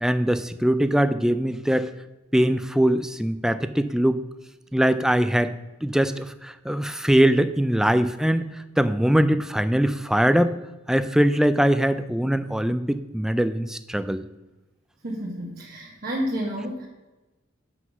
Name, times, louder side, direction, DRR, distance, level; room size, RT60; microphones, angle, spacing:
voice 1, 0.0-1.9 2.3-4.2 4.7-5.5 5.8-10.5 10.9-14.2, right 1 dB, 5° right, 11 dB, 0.3 m, -22 dB
voice 2, 15.0-16.9, equal, 50° right, -4 dB, 1.3 m, -30 dB
7.9 x 5.8 x 6.0 m, 1.1 s
head